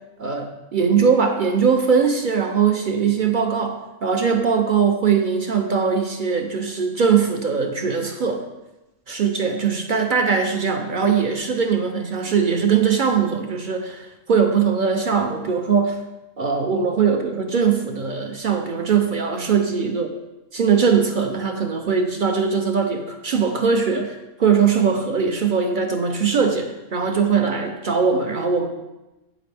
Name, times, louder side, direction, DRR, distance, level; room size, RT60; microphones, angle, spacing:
voice 1, 0.2-8.4 9.1-16.0 16.4-20.1 20.5-28.7, right 6 dB, 55° right, 5 dB, 0.5 m, -21 dB
8.3 x 7.6 x 3.4 m, 1.0 s
omnidirectional pair, 1.5 m